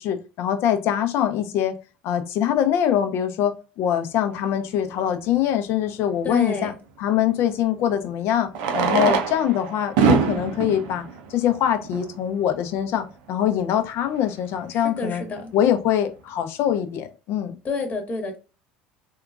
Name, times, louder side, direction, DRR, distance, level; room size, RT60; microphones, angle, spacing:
voice 1, 0.0-1.8 2.0-6.7 7.0-11.0 11.3-15.2 15.5-17.5, left 10 dB, 55° left, 0.5 m, -23 dB
Fireworks, 4.9-5.0 7.3-7.4 8.5-12.2 13.0-13.1 13.3-13.4 13.6-13.7 14.2-14.4, right 6 dB, 70° right, 0.6 m, -24 dB
voice 2, 6.2-6.7 8.9-9.2 14.7-15.5 17.6-18.4, left 2 dB, 30° left, 1.0 m, -29 dB
3.7 x 2.3 x 2.3 m
hypercardioid pair, 75°, 5 cm